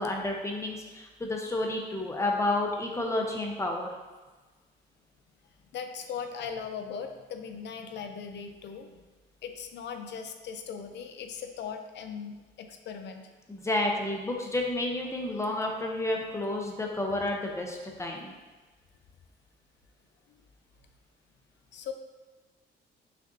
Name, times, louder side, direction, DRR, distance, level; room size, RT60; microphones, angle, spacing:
voice 1, 0.0-3.9 13.5-18.3, left 2 dB, 15° left, 1 dB, 0.7 m, -30 dB
voice 2, 5.7-9.0 9.4-13.3 21.7-21.9, left 6 dB, 65° left, 6 dB, 0.5 m, -39 dB
6.5 x 2.4 x 2.7 m, 1.3 s
cardioid pair, 90°, 20 cm